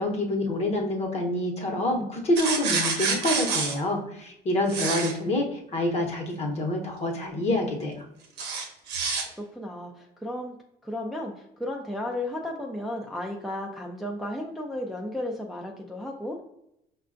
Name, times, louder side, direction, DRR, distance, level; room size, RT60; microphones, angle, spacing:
voice 1, 0.0-8.0, left 1 dB, 40° left, 1 dB, 0.9 m, -27 dB
sound 1, 2.4-3.8 4.7-5.1 8.4-9.2, right 5 dB, 80° right, 0.7 m, -27 dB
voice 2, 9.3-10.6 10.8-16.4, left 1 dB, ahead, 0 dB, 0.4 m, -34 dB
5.3 x 2.2 x 2.5 m, 0.81 s
cardioid pair, 110°, 17 cm